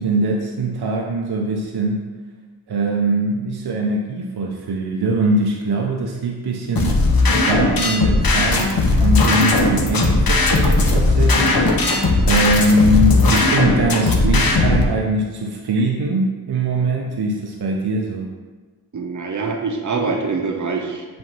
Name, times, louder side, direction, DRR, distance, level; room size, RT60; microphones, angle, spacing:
voice 1, 0.0-2.0 2.7-7.1 7.4-18.3, right 2 dB, 80° right, 0 dB, 0.7 m, -22 dB
sound 1, 6.7-14.8, left 2 dB, 65° left, 0.9 m, -17 dB
voice 2, 18.9-21.1, right 4 dB, 50° right, 2 dB, 0.8 m, -24 dB
7.8 x 2.7 x 5.4 m, 1.4 s
wide cardioid pair, 65°, 38 cm